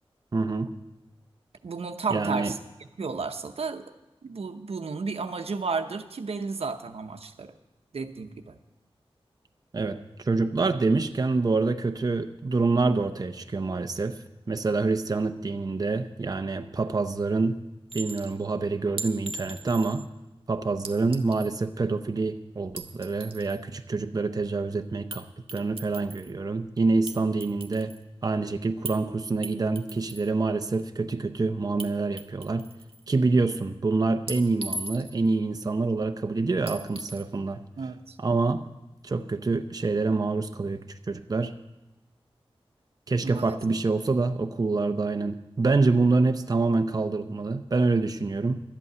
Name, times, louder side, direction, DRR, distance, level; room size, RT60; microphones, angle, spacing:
voice 1, 0.3-0.7 2.1-2.5 9.7-14.2 14.5-17.6 17.9-20.1 20.5-25.3 25.5-27.9 28.2-32.7 33.1-37.6 38.2-38.6 39.0-41.5 43.1-48.6, right 3 dB, 40° right, 7 dB, 0.6 m, -26 dB
voice 2, 1.6-2.6 3.0-3.9 4.2-7.5 7.9-8.6 37.8-38.2 43.2-43.6, right 4 dB, 85° right, 7 dB, 0.8 m, -32 dB
Chink clink, 17.9-18.3 19.0-20.1 20.8-21.6 22.6-23.6 25.1-25.2 25.5-26.3 27.1-28.0 28.9-29.0 29.4-30.3 31.8-31.9 32.2-33.0 34.3-35.3 36.7-37.2, right 2 dB, 65° right, 1.2 m, -38 dB
12.5 x 8.3 x 8.0 m, 1.0 s
wide cardioid pair, 90°, 10 cm